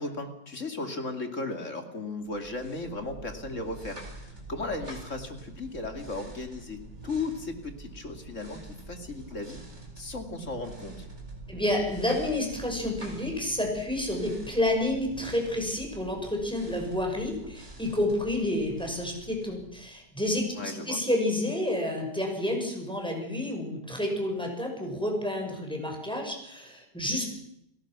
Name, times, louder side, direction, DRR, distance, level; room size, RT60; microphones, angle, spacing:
voice 1, 0.0-9.6 10.0-11.1 20.6-21.0, left 3 dB, 45° left, 5 dB, 2.9 m, -36 dB
sound 1, 2.3-20.1, right 2 dB, 40° right, 4.8 m, -46 dB
voice 2, 11.5-27.3, left 1 dB, 5° left, 1 dB, 6.1 m, -29 dB
30.0 x 17.5 x 6.2 m, 0.78 s
omnidirectional pair, 1.8 m